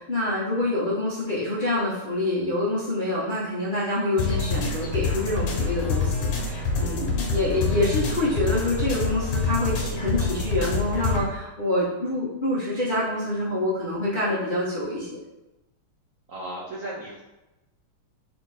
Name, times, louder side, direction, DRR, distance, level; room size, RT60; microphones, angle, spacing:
voice 1, 0.0-15.1, left 1 dB, 55° left, -10 dB, 0.5 m, -26 dB
voice 2, 0.6-0.9 16.3-17.2, right 1 dB, 75° right, -4 dB, 0.7 m, -36 dB
sound 1, 4.2-11.2, left 4 dB, 75° left, 1.6 m, -26 dB
3.8 x 2.6 x 4.7 m, 1.0 s
omnidirectional pair, 2.3 m